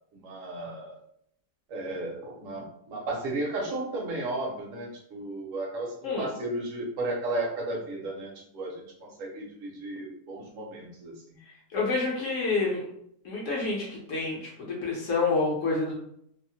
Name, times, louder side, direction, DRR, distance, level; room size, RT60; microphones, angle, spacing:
voice 1, 0.1-1.0 1.7-11.1, right 2 dB, 65° right, -1 dB, 1.0 m, -34 dB
voice 2, 11.7-12.8 13.2-15.9, left 3 dB, 65° left, -4 dB, 0.9 m, -28 dB
2.7 x 2.0 x 2.7 m, 0.70 s
omnidirectional pair, 1.7 m